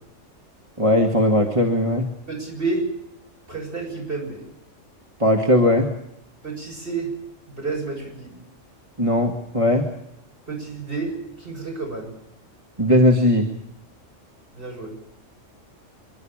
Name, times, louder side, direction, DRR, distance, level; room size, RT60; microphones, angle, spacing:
voice 1, 0.8-2.1 5.2-5.9 9.0-9.9 12.8-13.5, left 1 dB, 25° right, 2 dB, 1.8 m, -18 dB
voice 2, 2.3-2.9 3.5-4.4 6.4-7.1 7.5-8.3 10.5-12.1 14.5-14.9, right 3 dB, 45° right, -1 dB, 7.3 m, -30 dB
26.5 x 12.0 x 8.7 m, 0.78 s
omnidirectional pair, 1.3 m